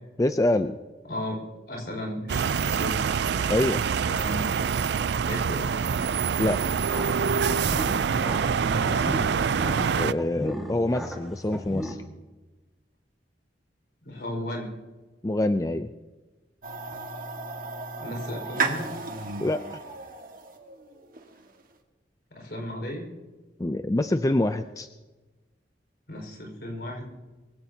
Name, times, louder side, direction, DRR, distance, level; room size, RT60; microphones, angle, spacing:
voice 1, 0.2-0.8 3.5-3.8 6.4-6.6 9.8-12.0 15.2-15.9 19.4-19.8 23.6-24.9, left 1 dB, 20° left, 9 dB, 0.4 m, -25 dB
voice 2, 1.7-3.0 4.1-4.7 5.2-5.7 8.7-9.3 14.0-14.7 18.0-18.9 22.3-23.1 26.1-27.1, left 1 dB, 60° left, 0 dB, 5.1 m, -35 dB
sound 1, 2.3-10.1, right 6 dB, 70° right, 0.4 m, -25 dB
sound 2, 6.7-11.9, equal, ahead, 1.8 m, -36 dB
sound 3, 16.6-21.6, right 3 dB, 50° right, 1.7 m, -34 dB
23.0 x 16.0 x 2.8 m, 1.2 s
head